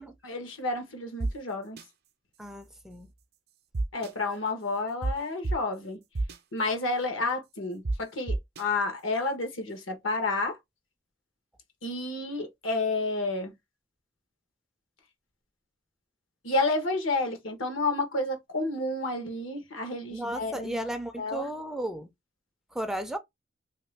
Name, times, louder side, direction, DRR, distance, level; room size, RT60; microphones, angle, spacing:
voice 1, 0.2-1.8 3.9-6.0 6.5-10.6 11.8-13.5 16.4-20.7 21.2-21.5, left 2 dB, 75° left, 1.2 m, -30 dB
sound 1, 1.2-1.3 1.8-1.9 3.7-4.1 5.0-5.1 5.4-5.5 6.1-6.4 7.8-7.9 8.3-8.6, right 2 dB, 55° right, 0.5 m, -28 dB
voice 2, 2.4-3.1 20.1-22.1 22.7-23.2, right 1 dB, ahead, 0.4 m, -34 dB
2.9 x 2.8 x 3.3 m
head